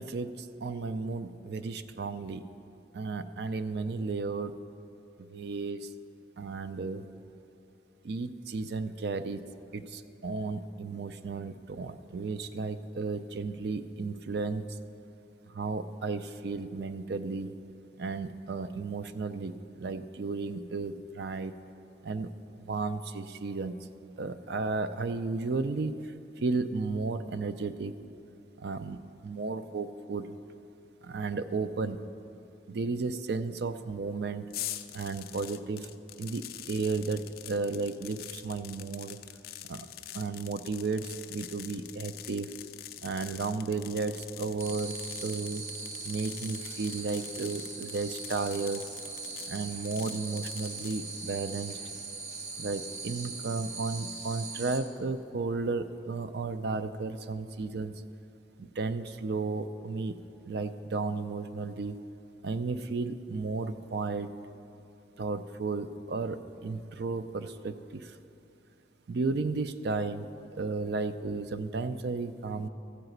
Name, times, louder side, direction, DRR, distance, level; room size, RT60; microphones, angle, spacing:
voice 1, 0.0-2.4 2.9-4.5 5.2-5.9 6.4-7.1 8.0-9.4 9.7-14.6 15.5-17.5 18.0-21.5 22.0-22.3 22.6-23.8 24.2-27.9 28.6-30.4 31.0-32.1 32.7-34.4 34.9-35.9 36.2-39.2 39.7-39.9 40.1-42.5 43.0-44.9 45.2-45.6 46.0-48.9 49.5-51.8 52.6-57.9 58.6-60.2 60.5-61.9 62.4-64.3 65.2-68.2 69.1-70.3 70.5-72.7, right 4 dB, 65° right, 11 dB, 0.4 m, -33 dB
sound 1, 34.5-51.0, left 13 dB, 50° left, 0.4 m, -45 dB
sound 2, 44.6-54.8, right 4 dB, 40° right, 1.2 m, -40 dB
13.5 x 4.9 x 7.9 m, 2.7 s
head